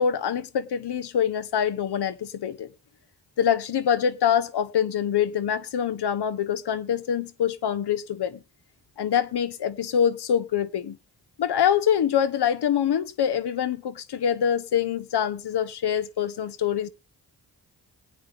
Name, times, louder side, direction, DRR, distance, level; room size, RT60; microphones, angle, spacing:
voice 1, 0.0-2.7 3.4-8.4 9.0-11.0 11.4-16.9, left 8 dB, 65° left, 0.9 m, -25 dB
21.0 x 8.8 x 3.4 m
supercardioid pair, 45°, 43 cm